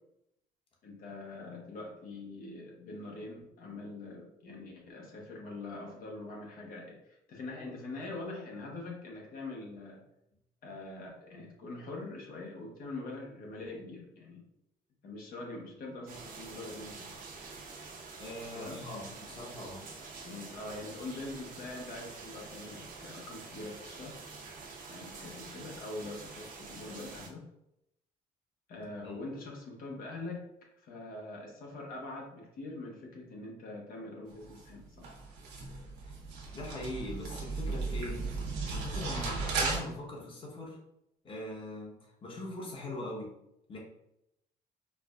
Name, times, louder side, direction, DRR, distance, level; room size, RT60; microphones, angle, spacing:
voice 1, 0.8-10.1 10.6-14.4 15.0-17.2 18.5-18.8 20.2-24.2 24.9-27.4 28.7-30.4 30.8-35.1 39.2-39.4, left 2 dB, 60° left, 0 dB, 1.0 m, -43 dB
sound 1, 16.1-27.3, right 4 dB, 55° right, 0.8 m, -47 dB
voice 2, 18.2-19.9 29.0-29.2 36.5-38.3 38.7-40.8 41.2-43.3 43.7-43.8, left 2 dB, 30° left, -2 dB, 1.1 m, -41 dB
sound 2, 34.3-39.8, right 4 dB, 90° right, 1.1 m, -36 dB
4.6 x 2.2 x 2.4 m, 0.82 s
cardioid pair, 110°, 17 cm